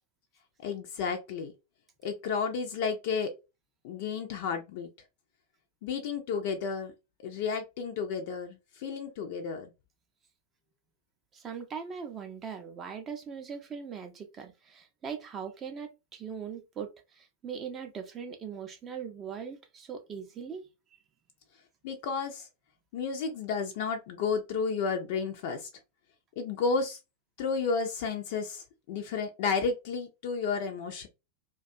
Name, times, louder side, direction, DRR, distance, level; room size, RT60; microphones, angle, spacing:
voice 1, 0.6-1.5 2.0-3.3 3.8-4.9 5.8-6.9 7.2-9.7 21.8-22.5 22.9-25.7 26.4-27.0 27.4-31.1, left 5 dB, 50° left, 0.4 m, -32 dB
voice 2, 11.3-20.7, right 7 dB, 25° right, 0.4 m, -40 dB
2.3 x 2.2 x 2.6 m
figure-of-eight pair, 90°, 0 cm